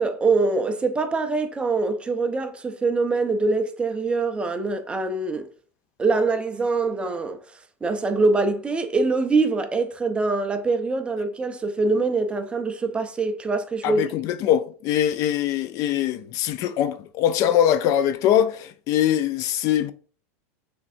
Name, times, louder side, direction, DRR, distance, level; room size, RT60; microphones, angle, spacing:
voice 1, 0.0-5.5 6.0-14.0, right 3 dB, 15° right, 0.5 m, -24 dB
voice 2, 13.8-19.9, left 10 dB, 45° left, 0.4 m, -22 dB
5.9 x 3.3 x 2.6 m
supercardioid pair, 130°, 8 cm